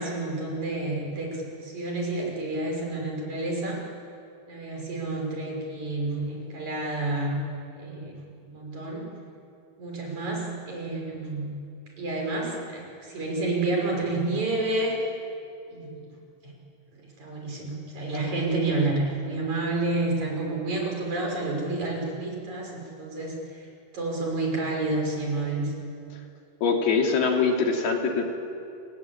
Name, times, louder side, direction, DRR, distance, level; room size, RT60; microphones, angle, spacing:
voice 1, 0.0-3.8 4.5-7.4 7.8-9.1 9.8-11.5 12.0-15.0 15.7-16.1 16.4-16.5 16.9-23.7 23.9-25.7, right 2 dB, 45° right, -1 dB, 7.1 m, -29 dB
voice 2, 26.6-28.2, left 5 dB, 75° left, 1 dB, 4.9 m, -23 dB
30.0 x 22.0 x 8.7 m, 2.5 s
omnidirectional pair, 4.5 m